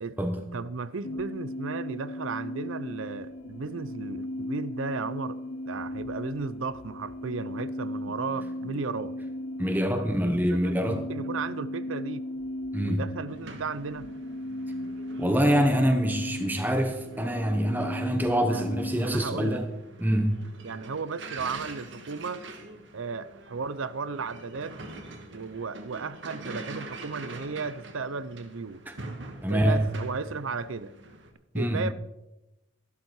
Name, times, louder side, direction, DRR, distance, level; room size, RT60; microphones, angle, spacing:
voice 1, 0.0-5.4 5.7-9.2 10.0-12.3 12.8-14.1 18.5-18.7 19.0-19.6 20.6-22.4 22.9-24.8 25.3-28.8 29.5-30.9 31.5-31.9, right 4 dB, 80° right, 0.6 m, -35 dB
sound 1, 1.0-19.2, left 1 dB, 75° left, 0.9 m, -36 dB
voice 2, 9.6-11.0 12.7-13.0 15.2-19.7 20.0-20.4 28.9-29.0 29.4-29.8 31.5-31.8, equal, 10° right, 1.1 m, -25 dB
sound 2, 13.3-31.3, right 2 dB, 65° right, 1.7 m, -45 dB
13.5 x 12.0 x 4.7 m
head